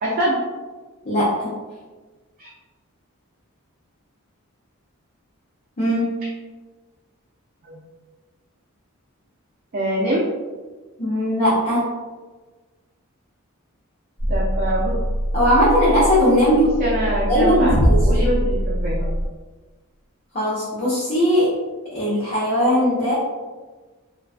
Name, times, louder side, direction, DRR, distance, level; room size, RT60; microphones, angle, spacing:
voice 1, 0.0-0.4 2.4-2.5 7.6-7.8 9.7-10.2 14.3-14.9 16.8-17.7 18.0-19.1, right 1 dB, 40° right, -5 dB, 0.3 m, -23 dB
voice 2, 1.0-1.5 5.8-6.2 11.0-11.9 15.3-16.7 17.3-18.3 20.3-21.5 21.9-23.2, equal, 40° left, -10 dB, 0.6 m, -19 dB
sound 1, 14.2-19.3, equal, 85° left, 1.1 m, -22 dB
2.3 x 2.2 x 2.4 m, 1.3 s
head